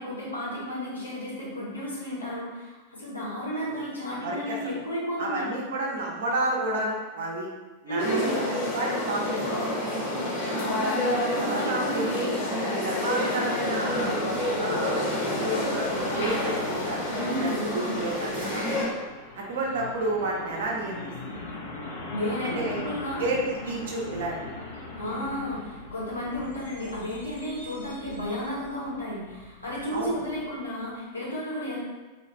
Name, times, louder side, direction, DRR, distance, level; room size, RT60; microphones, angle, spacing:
voice 1, 0.0-5.5 7.9-8.4 10.6-12.0 17.1-18.0 22.1-23.2 25.0-31.8, equal, 80° left, -7 dB, 0.9 m, -33 dB
voice 2, 4.1-4.7 5.2-7.5 7.8-8.4 8.7-9.7 10.4-10.6 11.4-12.4 12.8-14.1 14.6-18.7 19.3-21.4 22.4-22.8 23.2-24.4 29.9-30.2, right 2 dB, 60° right, -2 dB, 0.5 m, -31 dB
sound 1, 8.0-18.9, left 1 dB, 40° left, 1.1 m, -28 dB
Truck, 13.3-30.9, left 2 dB, 65° left, 0.5 m, -41 dB
2.3 x 2.2 x 3.0 m, 1.3 s
figure-of-eight pair, 90°, 0 cm